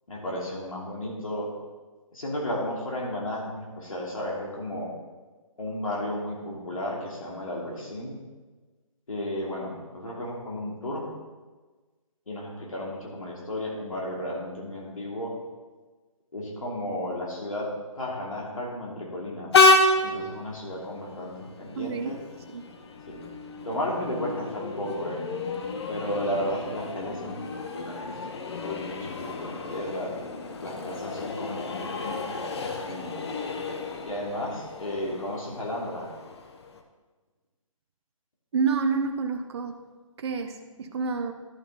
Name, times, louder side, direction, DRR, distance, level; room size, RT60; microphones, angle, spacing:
voice 1, 0.1-1.5 2.1-4.9 5.6-8.2 9.1-11.0 12.3-15.3 16.3-17.7 17.9-19.5 20.0-21.3 21.6-22.2 23.1-23.2 23.6-25.3 25.9-27.4 27.7-28.1 28.6-30.1 30.6-33.2 34.0-36.1, left 1 dB, 75° left, -3 dB, 2.8 m, -33 dB
Train, 19.5-36.8, left 2 dB, 50° left, 0.9 m, -29 dB
voice 2, 21.7-22.2 22.5-22.6 38.5-39.8 40.2-41.3, right 5 dB, 50° right, 6 dB, 0.7 m, -28 dB
11.0 x 5.6 x 4.0 m, 1.3 s
figure-of-eight pair, 150°, 17 cm